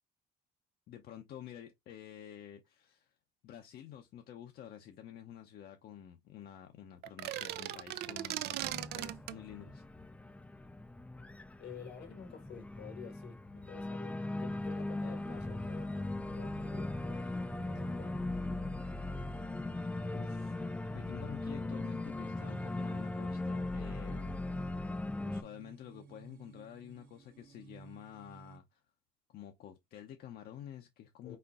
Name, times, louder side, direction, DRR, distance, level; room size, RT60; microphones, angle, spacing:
voice 1, 0.9-3.1 3.4-9.8 20.1-20.6 20.9-24.4 25.2-28.8 29.3-31.4, left 10 dB, 65° left, 0.7 m, -50 dB
sound 1, 7.0-9.4, right 14 dB, 75° right, 0.4 m, -38 dB
Organ, 8.6-25.4, left 2 dB, 10° left, 0.3 m, -39 dB
voice 2, 11.6-18.3 31.2-31.4, left 6 dB, 85° left, 1.6 m, -51 dB
sound 2, 13.3-28.6, right 5 dB, 55° right, 1.0 m, -57 dB
4.5 x 4.3 x 2.5 m
cardioid pair, 110°, 17 cm